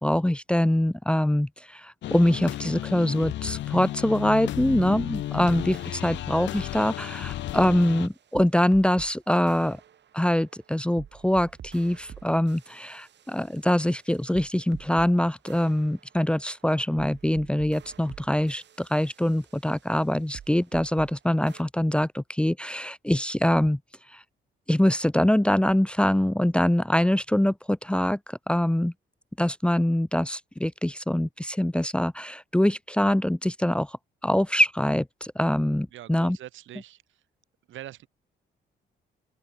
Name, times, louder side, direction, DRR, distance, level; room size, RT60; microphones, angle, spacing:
voice 1, 0.0-9.8 10.1-23.8 24.1-24.2 24.7-28.9 29.4-34.0 34.2-36.4, left 1 dB, 5° left, 1.0 m, -24 dB
sound 1, 2.0-8.1, left 14 dB, 65° left, 0.5 m, -33 dB
sound 2, 4.7-9.1 9.5-15.1 15.5-21.1 21.5-21.6, right 9 dB, 60° right, 7.7 m, -48 dB
voice 2, 35.9-37.2 37.7-38.1, right 13 dB, 80° right, 3.8 m, -44 dB
cardioid pair, 90°, 20 cm